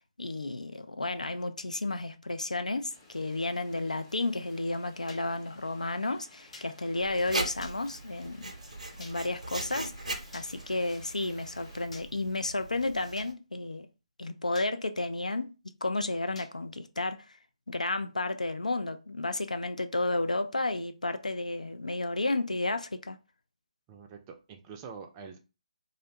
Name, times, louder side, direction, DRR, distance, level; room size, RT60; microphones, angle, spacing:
voice 1, 0.2-8.5 9.0-13.9 14.2-15.5 15.8-17.4 17.7-23.2, left 2 dB, 85° left, 0.4 m, -32 dB
sound 1, 2.9-11.9, left 2 dB, 20° left, 0.6 m, -57 dB
sound 2, 5.1-5.2 6.5-6.7 7.6-7.8 9.0-9.2 10.3-10.5 11.9-12.1 13.2-13.3 14.5-14.7 16.4-16.5, left 2 dB, 65° left, 0.8 m, -48 dB
Writing, 7.0-13.3, right 2 dB, 75° right, 0.6 m, -40 dB
voice 2, 23.9-25.4, right 5 dB, 20° right, 0.4 m, -45 dB
2.5 x 2.1 x 2.7 m
figure-of-eight pair, 140°, 4 cm